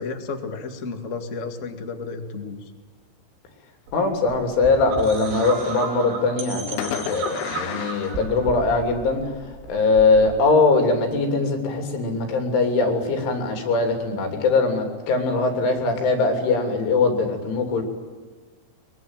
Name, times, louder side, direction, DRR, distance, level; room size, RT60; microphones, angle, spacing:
voice 1, 0.0-2.7, left 4 dB, 55° left, 5 dB, 0.8 m, -32 dB
voice 2, 3.9-9.2 9.7-17.8, left 3 dB, 85° left, 5 dB, 5.8 m, -21 dB
sound 1, 3.9-10.6, right 5 dB, 65° right, 5.4 m, -34 dB
Fireworks, 5.2-6.2 6.8-9.0, left 9 dB, 70° left, 2.7 m, -34 dB
23.0 x 22.5 x 9.2 m, 1.4 s
omnidirectional pair, 5.4 m